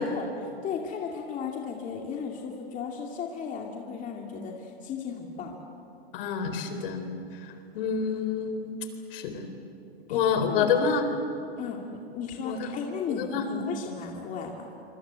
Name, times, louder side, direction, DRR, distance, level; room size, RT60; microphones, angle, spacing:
voice 1, 0.0-5.5 10.1-10.2 10.5-10.8 11.6-14.7, left 6 dB, 25° left, 1 dB, 2.6 m, -35 dB
voice 2, 6.1-7.1 7.4-8.8 9.1-9.5 10.1-11.1 12.4-12.7 13.2-13.5, left 6 dB, 60° left, 8 dB, 4.0 m, -28 dB
26.5 x 25.5 x 8.3 m, 2.7 s
hypercardioid pair, 140°, 32 cm